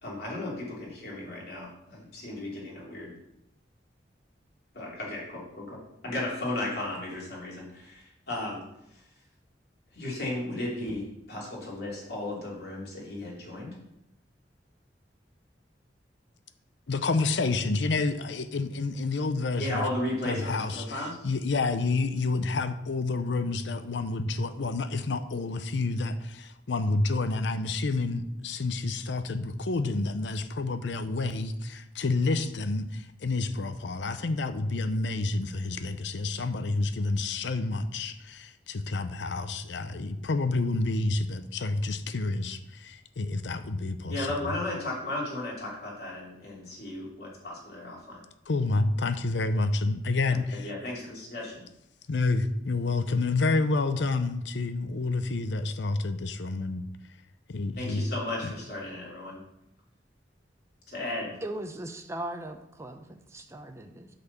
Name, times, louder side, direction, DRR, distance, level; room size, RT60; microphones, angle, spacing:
voice 1, 0.0-3.2 4.8-8.6 9.9-13.7 19.6-21.2 44.1-48.2 50.3-51.6 57.8-59.4 60.9-61.3, left 1 dB, 60° left, -4 dB, 2.9 m, -35 dB
voice 2, 16.9-19.8 20.2-44.5 48.5-50.7 52.1-56.8 57.5-58.0, left 3 dB, 75° left, 11 dB, 0.6 m, -29 dB
voice 3, 61.4-64.1, right 1 dB, 15° right, 6 dB, 0.7 m, -38 dB
8.2 x 4.2 x 7.0 m, 0.83 s
head